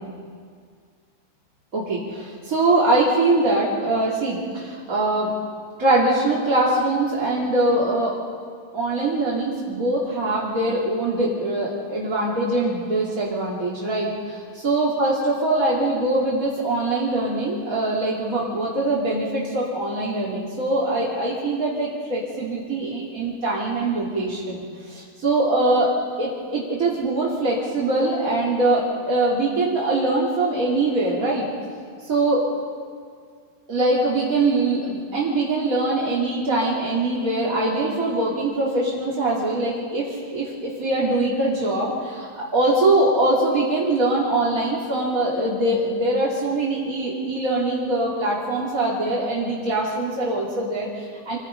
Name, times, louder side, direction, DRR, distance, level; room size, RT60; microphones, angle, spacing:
voice 1, 1.7-5.3 5.8-8.2 8.7-24.6 24.9-25.9 26.2-31.4 32.0-32.4 33.7-51.4, right 2 dB, 25° right, -6 dB, 2.0 m, -23 dB
26.5 x 18.5 x 5.2 m, 2.1 s
omnidirectional pair, 5.3 m